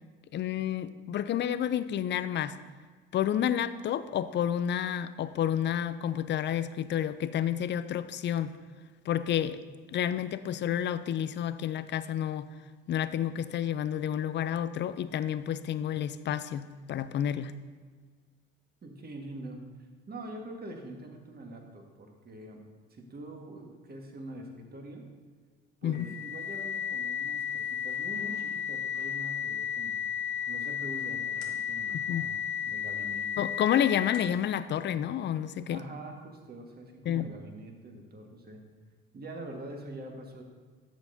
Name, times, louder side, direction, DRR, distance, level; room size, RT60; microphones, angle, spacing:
voice 1, 0.3-2.6 3.1-8.6 9.1-9.6 9.9-12.5 12.9-17.5 25.8-26.1 31.9-32.3 33.4-35.8 37.1-37.3, left 10 dB, 40° left, 14 dB, 0.5 m, -30 dB
voice 2, 18.8-19.6 20.1-22.6 22.9-25.0 25.8-30.0 30.5-33.4 35.7-38.6 39.1-40.4, right 1 dB, 30° right, 2 dB, 1.7 m, -44 dB
sound 1, 25.9-34.5, left 8 dB, 75° left, 1.4 m, -33 dB
11.0 x 7.6 x 2.7 m, 1.5 s
hypercardioid pair, 60°, 30 cm